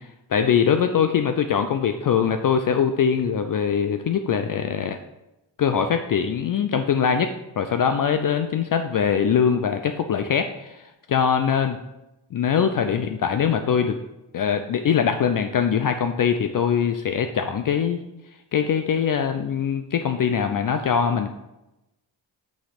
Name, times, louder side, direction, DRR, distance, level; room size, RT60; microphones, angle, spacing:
voice 1, 0.3-5.0 5.6-11.8 12.3-14.0 14.3-18.0 18.5-21.3, left 7 dB, 45° left, 7 dB, 0.5 m, -22 dB
6.1 x 3.1 x 5.1 m, 0.93 s
supercardioid pair, 50°, 50 cm